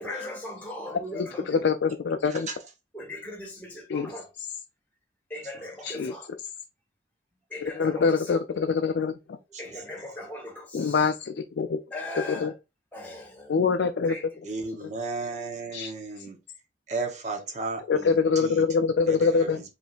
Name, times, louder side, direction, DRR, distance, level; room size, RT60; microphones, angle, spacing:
voice 1, 0.0-1.7 2.9-4.3 5.3-6.3 7.5-8.4 9.6-11.1 11.9-12.5 12.9-13.5 14.1-14.6, left 1 dB, 10° left, 1.4 m, -39 dB
voice 2, 1.2-2.5 3.9-4.1 5.8-6.1 7.8-9.4 10.7-11.8 12.4-12.5 13.5-14.1 14.8-14.9 15.7-15.9 17.9-19.6, left 5 dB, 70° left, 0.4 m, -24 dB
voice 3, 14.4-16.4 16.9-18.7 19.1-19.6, right 3 dB, 40° right, 0.9 m, -34 dB
5.1 x 3.2 x 2.4 m
head